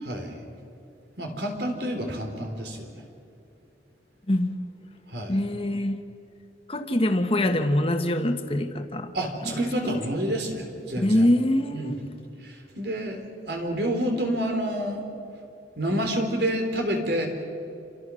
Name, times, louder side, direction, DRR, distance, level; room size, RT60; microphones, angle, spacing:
voice 1, 0.1-0.4 1.2-2.9 5.1-5.4 9.1-11.3 11.7-12.0 12.4-13.2 13.5-15.0 15.8-17.3, right 1 dB, 75° right, 4 dB, 3.9 m, -28 dB
voice 2, 4.3-4.6 5.3-6.0 6.7-9.1 9.4-9.5 9.8-10.0 11.0-12.0, left 1 dB, 35° left, 6 dB, 1.5 m, -24 dB
28.5 x 26.0 x 6.4 m, 2.6 s
head